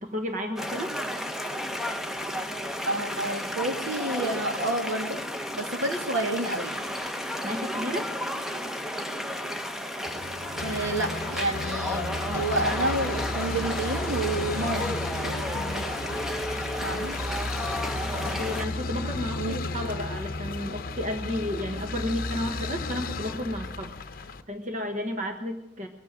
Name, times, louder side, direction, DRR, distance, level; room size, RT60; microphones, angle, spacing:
voice 1, 0.0-1.0 7.4-8.1 18.2-25.9, left 1 dB, 40° right, 5 dB, 1.2 m, -32 dB
Ambiente - platerias compostela, 0.6-18.7, equal, ahead, 0.8 m, -33 dB
voice 2, 2.9-5.2 5.5-6.7 10.6-15.0 15.2-15.9 16.8-17.2 19.4-19.6, right 2 dB, 75° right, 4 dB, 2.3 m, -30 dB
sound 1, 10.1-24.4, left 2 dB, 45° left, 0.8 m, -34 dB
22.5 x 8.4 x 7.5 m, 0.91 s
head